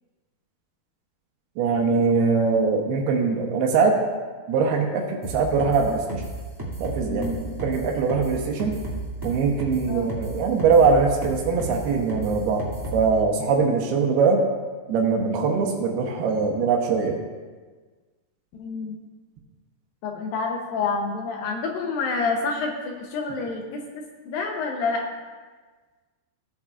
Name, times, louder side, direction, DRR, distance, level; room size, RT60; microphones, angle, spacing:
voice 1, 1.6-4.0 4.5-6.2 6.8-8.7 9.2-12.6 12.9-14.4 14.9-17.2, right 5 dB, 75° right, 1 dB, 2.8 m, -22 dB
sound 1, 5.2-13.1, right 2 dB, 15° right, 0.7 m, -33 dB
voice 2, 7.1-7.5 9.9-10.1 18.5-19.0 20.0-25.0, left 4 dB, 75° left, 1 dB, 2.2 m, -28 dB
16.5 x 8.5 x 2.4 m, 1.4 s
omnidirectional pair, 4.9 m